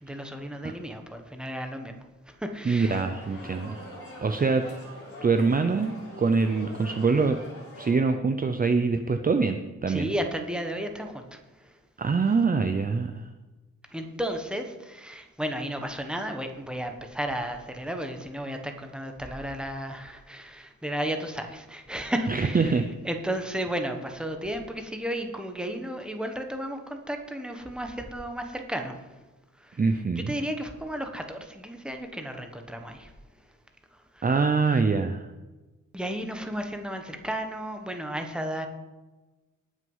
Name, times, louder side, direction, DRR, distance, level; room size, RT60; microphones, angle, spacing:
voice 1, 0.0-2.0 2.3-3.0 9.9-11.8 13.9-22.8 23.0-29.2 29.6-29.8 30.2-33.1 33.9-34.8 35.9-38.7, equal, 5° right, 4 dB, 1.2 m, -33 dB
voice 2, 2.7-3.8 4.2-4.7 5.2-7.4 7.8-10.1 12.0-13.2 22.3-22.9 29.8-30.3 34.2-35.3, right 4 dB, 30° right, 7 dB, 0.6 m, -24 dB
sound 1, 2.8-7.9, left 1 dB, 45° left, 3.8 m, -43 dB
19.0 x 6.3 x 5.6 m, 1.2 s
wide cardioid pair, 165°, 32 cm